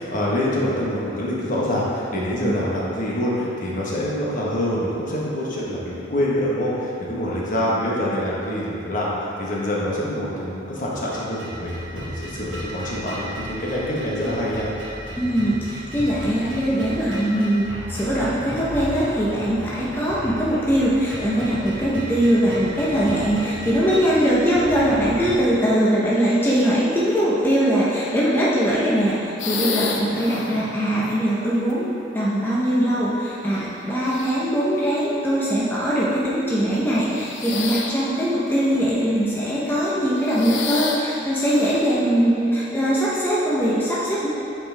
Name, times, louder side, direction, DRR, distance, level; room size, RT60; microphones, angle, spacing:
voice 1, 0.0-9.1 9.4-14.7, left 1 dB, 45° left, -5 dB, 1.2 m, -25 dB
sound 1, 11.1-25.4, equal, 85° right, 1.5 m, -35 dB
voice 2, 15.2-31.9 32.1-44.3, equal, 10° left, -8 dB, 0.8 m, -21 dB
sound 2, 29.4-31.7 32.6-33.3 33.9-34.6 35.5-35.7 37.0-38.1 38.5-39.1 39.9-42.0, left 4 dB, 75° left, 0.6 m, -31 dB
8.5 x 4.7 x 3.4 m, 2.9 s
head